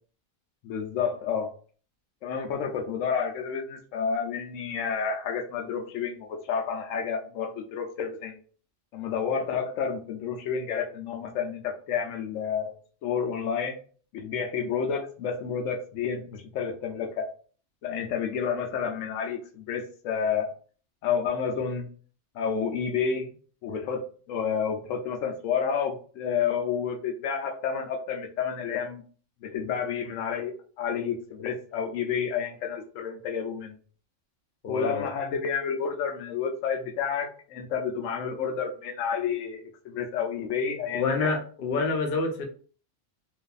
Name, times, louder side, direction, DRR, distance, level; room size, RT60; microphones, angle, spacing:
voice 1, 0.6-1.5 2.2-8.4 8.9-12.7 13.0-13.8 14.1-17.3 17.8-20.5 21.0-21.9 22.3-23.3 23.6-29.0 29.4-33.8 34.7-41.4, left 6 dB, 85° left, 3 dB, 0.9 m, -30 dB
voice 2, 34.6-35.1 40.9-42.5, left 4 dB, 55° left, 3 dB, 0.7 m, -27 dB
2.6 x 2.4 x 2.3 m, 0.41 s
omnidirectional pair, 1.3 m